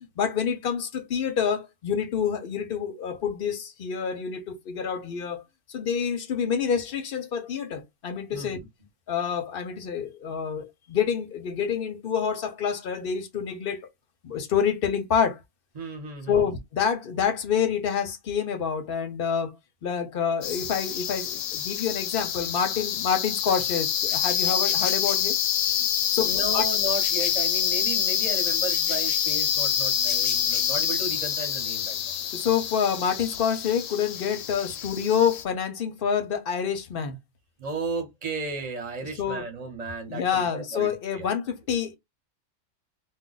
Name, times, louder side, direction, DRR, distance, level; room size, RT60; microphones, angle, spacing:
voice 1, 0.2-5.4 5.7-8.6 9.1-13.8 14.2-15.4 16.3-19.5 19.8-25.4 25.8-25.9 26.1-26.6 32.3-37.2 39.2-39.4 40.1-42.0, left 7 dB, 55° left, 0.8 m, -27 dB
voice 2, 15.7-16.4 26.2-32.0 37.6-41.3, right 3 dB, 35° right, 1.0 m, -34 dB
sound 1, 20.4-35.4, left 9 dB, 80° left, 0.9 m, -26 dB
2.3 x 2.2 x 3.8 m
omnidirectional pair, 1.3 m